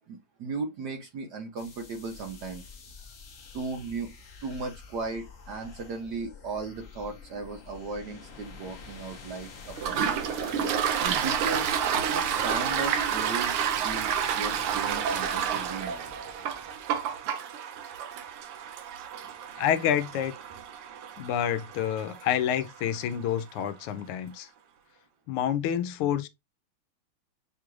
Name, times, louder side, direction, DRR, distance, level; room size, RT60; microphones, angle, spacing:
voice 1, 0.1-2.6 3.1-3.2 3.5-4.1 4.4-10.2 11.0-11.8 12.0-16.1, right 4 dB, 65° right, 1.0 m, -36 dB
sound 1, 1.6-16.9, left 5 dB, 50° left, 0.7 m, -47 dB
Toilet flush, 9.8-23.1, right 8 dB, 80° right, 1.6 m, -30 dB
voice 2, 19.6-20.3 21.2-24.5 25.3-26.3, left 9 dB, 80° left, 1.5 m, -28 dB
6.5 x 2.4 x 3.0 m
omnidirectional pair, 2.4 m